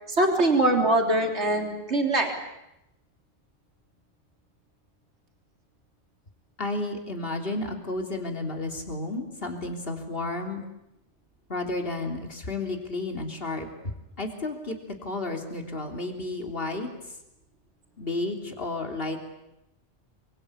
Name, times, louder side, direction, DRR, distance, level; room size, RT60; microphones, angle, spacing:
voice 1, 0.1-2.4, right 2 dB, 75° right, 3 dB, 3.8 m, -23 dB
voice 2, 6.6-10.6 11.5-13.7 14.2-16.9 18.0-19.2, left 2 dB, 55° left, 3 dB, 3.7 m, -32 dB
27.5 x 24.5 x 8.7 m, 0.87 s
omnidirectional pair, 1.2 m